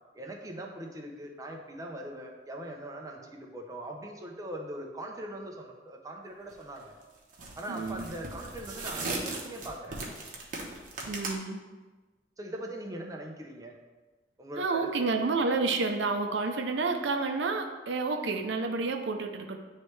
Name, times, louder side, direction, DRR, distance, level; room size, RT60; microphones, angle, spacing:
voice 1, 0.1-7.0 7.6-10.0 12.4-13.7 14.4-15.1, right 1 dB, 20° right, 0 dB, 0.7 m, -41 dB
sound 1, 6.5-6.8 7.3-11.3, right 2 dB, 50° right, 0.9 m, -38 dB
voice 2, 7.7-8.1 11.1-11.7 14.6-19.6, right 3 dB, 85° right, 5 dB, 0.5 m, -30 dB
9.5 x 3.2 x 3.2 m, 1.2 s
head